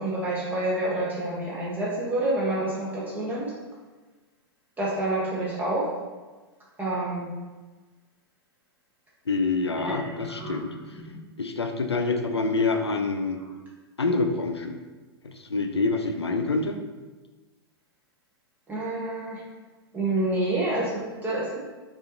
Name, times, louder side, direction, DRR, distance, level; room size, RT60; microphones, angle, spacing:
voice 1, 0.0-3.5 4.8-5.9 6.8-7.3 9.8-9.9 10.3-10.5 11.0-11.2 18.7-19.4 19.9-21.6, right 2 dB, 15° right, -6 dB, 0.7 m, -28 dB
voice 2, 9.3-10.7 11.4-13.4 14.0-14.8 15.2-16.8, left 3 dB, 90° left, 6 dB, 0.4 m, -26 dB
5.1 x 2.5 x 2.5 m, 1.3 s
figure-of-eight pair, 105°, 13 cm